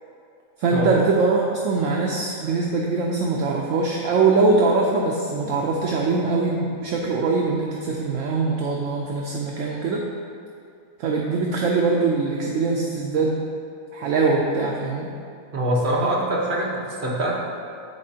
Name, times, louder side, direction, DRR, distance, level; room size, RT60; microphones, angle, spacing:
voice 1, 0.6-10.0 11.0-13.4 13.9-15.1, right 3 dB, 70° right, -1 dB, 0.8 m, -22 dB
voice 2, 15.5-17.4, right 1 dB, 35° right, -4 dB, 1.0 m, -24 dB
9.6 x 4.3 x 2.8 m, 2.5 s
omnidirectional pair, 1.7 m